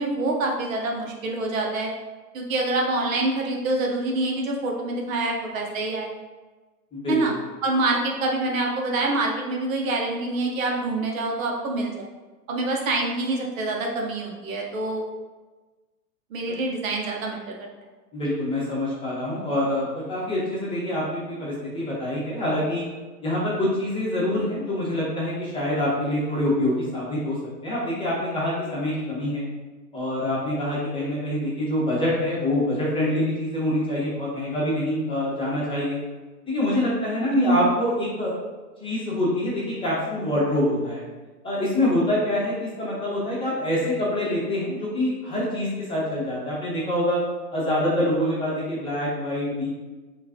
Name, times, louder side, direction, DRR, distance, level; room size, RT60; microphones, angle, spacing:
voice 1, 0.0-1.9 2.3-6.1 7.1-7.3 7.6-12.1 12.5-15.0 16.3-17.7 37.3-37.7, right 2 dB, 55° right, 0 dB, 0.8 m, -26 dB
voice 2, 6.9-7.2 18.1-22.8 23.2-27.4 27.6-29.4 29.9-36.0 36.5-38.3 38.8-41.0 41.4-47.2 47.5-49.7, left 1 dB, 10° left, -7 dB, 0.9 m, -25 dB
4.6 x 2.4 x 2.7 m, 1.3 s
hypercardioid pair, 125°, 49 cm